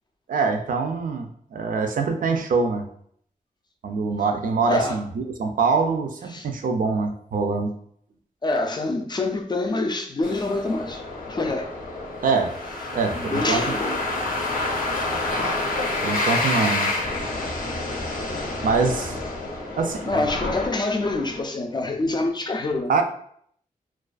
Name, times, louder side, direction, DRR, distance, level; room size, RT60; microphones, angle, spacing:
voice 1, 0.3-2.9 3.8-7.7 12.2-12.5 12.9-13.9 16.0-16.9 18.6-19.2 19.8-20.3 22.9-23.0, right 4 dB, 75° right, 0.4 m, -24 dB
voice 2, 4.7-5.0 6.3-6.5 8.4-11.7 13.1-14.0 14.3-14.4 20.0-22.9, left 2 dB, 30° left, 0.3 m, -26 dB
sound 1, 10.2-21.4, left 2 dB, 85° left, 0.6 m, -28 dB
2.3 x 2.2 x 2.4 m
wide cardioid pair, 105°, 14 cm